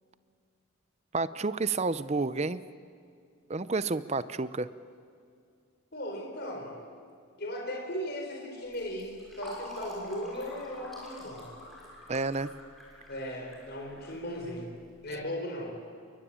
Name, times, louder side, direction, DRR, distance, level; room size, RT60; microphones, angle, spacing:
voice 1, 1.1-2.6 3.5-4.7 12.1-12.5, right 3 dB, 30° right, 15 dB, 0.6 m, -30 dB
voice 2, 5.9-6.8 7.4-11.5 13.1-14.7 15.0-15.8, equal, 45° left, 1 dB, 4.7 m, -37 dB
Fill (with liquid), 8.7-15.1, left 1 dB, ahead, 6.5 m, -47 dB
29.0 x 23.0 x 8.9 m, 2.3 s
head